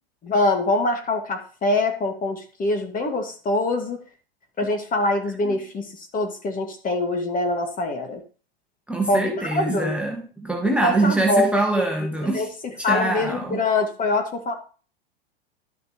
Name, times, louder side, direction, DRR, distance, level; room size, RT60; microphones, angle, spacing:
voice 1, 0.2-4.0 4.6-8.2 9.1-9.9 10.6-11.9 12.3-14.5, left 2 dB, 30° left, 2.1 m, -24 dB
voice 2, 8.9-12.5 12.9-13.6, right 2 dB, 5° right, 1.5 m, -24 dB
12.0 x 6.5 x 3.1 m
hypercardioid pair, 95°, 30 cm